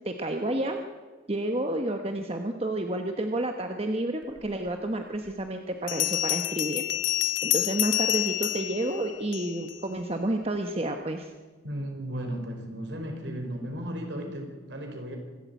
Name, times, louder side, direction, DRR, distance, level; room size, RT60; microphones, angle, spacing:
voice 1, 0.0-0.8 1.3-6.8 7.4-11.3, right 1 dB, 30° right, 5 dB, 1.1 m, -30 dB
Bell, 4.7-4.8 5.9-9.8, left 14 dB, 80° left, 0.9 m, -28 dB
voice 2, 11.6-15.2, equal, 65° right, 4 dB, 4.6 m, -35 dB
25.5 x 13.0 x 8.2 m, 1.4 s
head